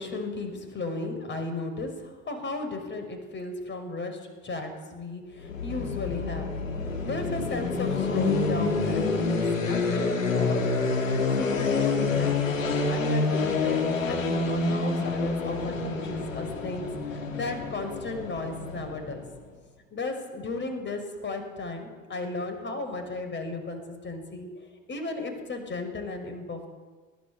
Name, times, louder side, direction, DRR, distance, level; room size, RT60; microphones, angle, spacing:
voice 1, 0.0-10.7 11.3-19.2 19.9-26.7, left 3 dB, 30° left, 7 dB, 6.0 m, -35 dB
sound 1, 5.4-19.3, left 3 dB, 80° left, 3.1 m, -27 dB
23.0 x 19.5 x 8.1 m, 1.4 s
figure-of-eight pair, 65°, 39 cm